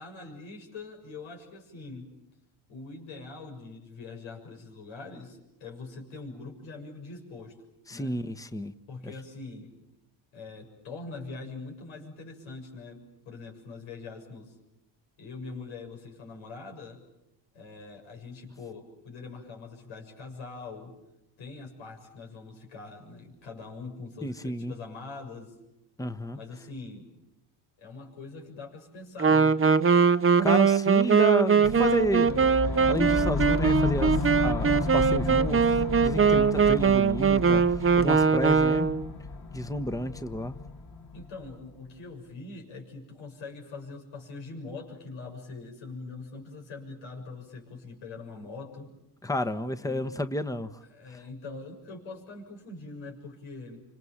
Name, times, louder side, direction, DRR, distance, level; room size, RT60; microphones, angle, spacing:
voice 1, 0.0-2.1 2.7-7.6 7.9-8.2 8.9-9.7 10.3-14.6 15.2-17.0 17.5-20.9 21.4-25.5 26.3-27.1 27.8-29.6 41.1-48.9 49.8-50.2 50.9-53.8, left 3 dB, 90° left, 7.3 m, -43 dB
voice 2, 7.9-8.7 9.0-9.1 24.2-24.7 26.0-26.4 30.4-32.3 32.6-38.9 39.5-40.5 49.2-50.7, left 1 dB, 5° left, 1.3 m, -31 dB
Wind instrument woodwind instrument, 29.2-39.1, right 6 dB, 30° right, 1.0 m, -22 dB
sound 1, 31.6-41.7, left 4 dB, 55° left, 3.8 m, -32 dB
28.5 x 26.5 x 7.4 m
cardioid pair, 80°, 46 cm